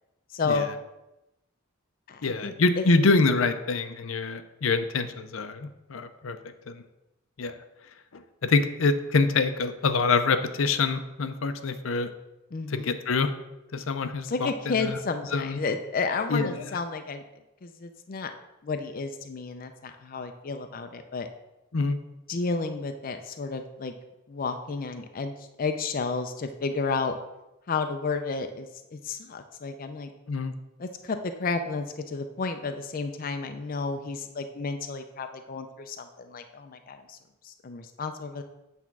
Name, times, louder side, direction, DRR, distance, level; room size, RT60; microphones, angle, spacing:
voice 1, 0.3-0.7 2.1-2.8 12.5-12.9 14.3-17.2 17.6-18.3 18.6-21.3 22.3-23.9 24.3-27.2 27.7-30.1 30.8-37.2 37.4-38.4, left 4 dB, 45° left, 7 dB, 0.5 m, -32 dB
voice 2, 2.2-6.4 6.7-6.8 7.4-7.6 8.1-12.1 12.7-13.3 13.7-15.0 15.3-15.6 16.3-16.8 21.7-22.0 30.3-30.5, left 3 dB, 85° left, 9 dB, 0.6 m, -26 dB
8.1 x 3.6 x 6.0 m, 0.95 s
head